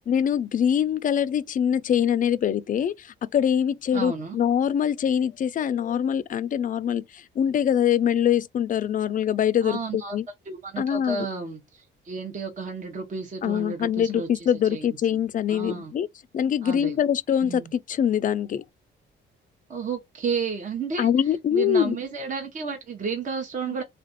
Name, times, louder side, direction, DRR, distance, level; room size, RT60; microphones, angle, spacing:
voice 1, 0.1-10.3 10.8-11.3 13.4-16.1 16.3-18.6 21.0-22.0, left 9 dB, 45° left, 0.4 m, -24 dB
voice 2, 3.9-4.4 9.6-10.2 10.5-14.9 15.1-15.2 15.5-15.9 16.6-16.9 17.4-17.7 19.7-21.1 21.5-23.8, right 5 dB, 40° right, 0.9 m, -32 dB
3.4 x 2.5 x 3.9 m
cardioid pair, 90°, 20 cm